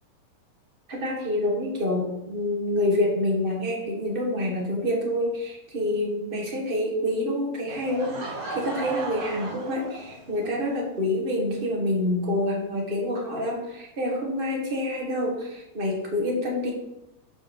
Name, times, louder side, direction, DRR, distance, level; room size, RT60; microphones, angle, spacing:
voice 1, 0.9-16.7, left 1 dB, 35° right, -1 dB, 0.8 m, -27 dB
Laughter / Crowd, 7.7-10.5, right 2 dB, 50° right, 3.5 m, -35 dB
7.6 x 4.9 x 6.4 m, 0.90 s
omnidirectional pair, 3.8 m